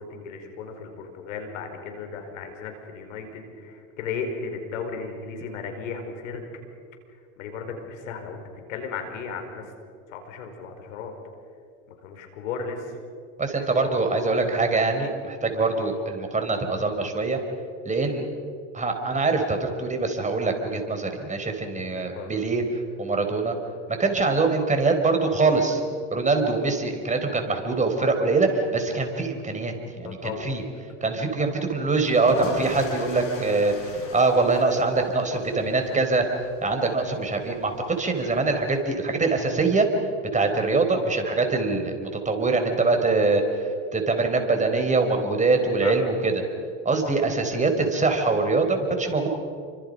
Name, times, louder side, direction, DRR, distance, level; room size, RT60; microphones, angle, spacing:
voice 1, 0.0-6.4 7.4-8.4 8.7-9.6 10.1-11.1 12.0-12.9 15.8-15.9 22.2-22.3 30.0-30.5 37.0-37.1 43.1-43.3 45.8-46.0, left 5 dB, 80° left, 5 dB, 5.2 m, -35 dB
voice 2, 13.4-17.4 17.8-18.2 18.7-22.6 23.0-23.5 24.0-25.8 26.1-29.7 30.0-30.6 31.0-36.3 36.6-39.9 40.3-46.4 46.8-49.3, right 3 dB, 20° right, 4 dB, 4.5 m, -23 dB
sound 1, 32.0-38.8, left 3 dB, 55° left, 7.7 m, -40 dB
29.0 x 25.5 x 5.5 m, 2.3 s
hypercardioid pair, 95°, 39 cm